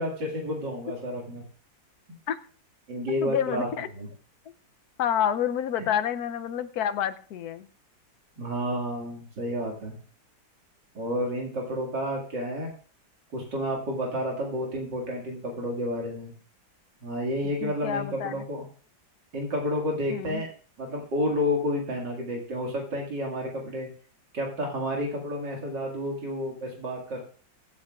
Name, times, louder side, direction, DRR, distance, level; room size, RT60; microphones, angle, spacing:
voice 1, 0.0-1.4 2.9-4.1 5.8-5.9 8.4-10.0 10.9-12.7 13.3-16.3 17.0-18.7 19.3-20.5 20.8-23.9 24.3-27.2, left 1 dB, 70° right, 0 dB, 2.8 m, -30 dB
voice 2, 3.2-3.9 5.0-7.7 17.6-18.4 20.1-20.4, left 9 dB, 65° left, 11 dB, 1.1 m, -28 dB
22.5 x 8.7 x 2.4 m, 0.41 s
omnidirectional pair, 2.0 m